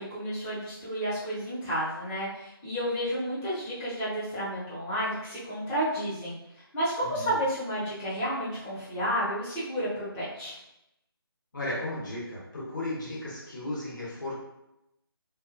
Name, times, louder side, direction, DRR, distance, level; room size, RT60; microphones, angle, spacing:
voice 1, 0.0-6.4 6.7-10.6, equal, 10° left, -10 dB, 0.5 m, -31 dB
voice 2, 11.5-14.3, left 1 dB, 50° left, -6 dB, 1.1 m, -35 dB
2.5 x 2.3 x 2.5 m, 0.85 s
figure-of-eight pair, 150°, 13 cm